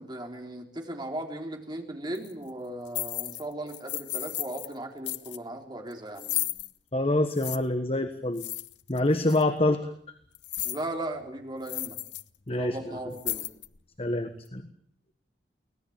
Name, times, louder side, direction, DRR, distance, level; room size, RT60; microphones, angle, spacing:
voice 1, 0.0-6.5 10.6-12.0 12.6-13.5, right 1 dB, 25° right, 3 dB, 3.7 m, -37 dB
sound 1, 2.1-2.3 2.9-3.4 3.7-4.7 5.1-5.4 6.2-6.7 7.4-7.6 8.4-9.0 9.3-9.4 10.3-10.8 11.2-11.3 11.6-12.2 12.5-12.7 13.1-13.8, left 16 dB, 80° left, 0.9 m, -34 dB
voice 2, 6.9-8.4 8.9-9.8 12.5-12.8 14.0-14.6, left 1 dB, 35° left, 8 dB, 1.4 m, -26 dB
24.5 x 18.5 x 8.8 m, 0.65 s
head